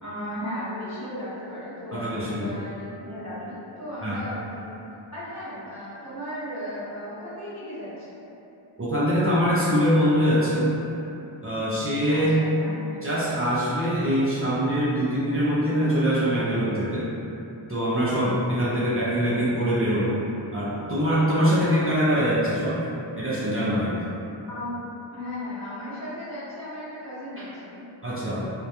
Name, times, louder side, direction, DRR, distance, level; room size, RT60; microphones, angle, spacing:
voice 1, 0.0-4.7 5.1-8.2 12.1-12.8 24.5-24.8 25.1-27.9, left 1 dB, 35° left, -12 dB, 1.0 m, -36 dB
voice 2, 1.9-2.5 4.0-4.2 8.8-10.7 11.4-12.3 13.0-17.1 17.7-20.2 20.5-22.8 23.2-24.0 28.0-28.5, equal, 30° right, -10 dB, 0.4 m, -23 dB
2.2 x 2.1 x 2.8 m, 2.9 s
wide cardioid pair, 40°, 48 cm